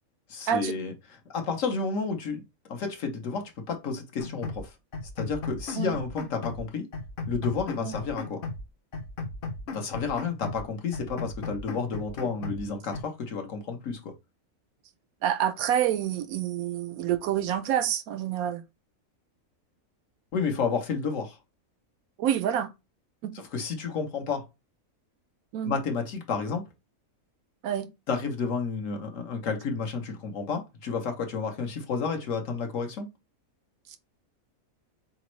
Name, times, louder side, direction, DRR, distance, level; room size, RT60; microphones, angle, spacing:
voice 1, 0.3-0.9 1.3-2.4 2.7-4.7 5.2-6.9 7.3-8.4 9.7-14.1 20.3-21.4 23.3-24.4 25.6-26.6 28.1-33.1, left 5 dB, 65° left, 1.3 m, -31 dB
sound 1, 4.2-4.7 4.9-6.7 6.9-8.7 8.9-10.6 10.9-12.6 12.9-13.0, left 3 dB, 50° left, 0.7 m, -36 dB
voice 2, 15.2-18.6 22.2-22.7 23.2-23.3 25.5-25.7 27.6-27.9, right 10 dB, 85° right, 1.1 m, -27 dB
4.1 x 3.5 x 3.0 m
omnidirectional pair, 1.5 m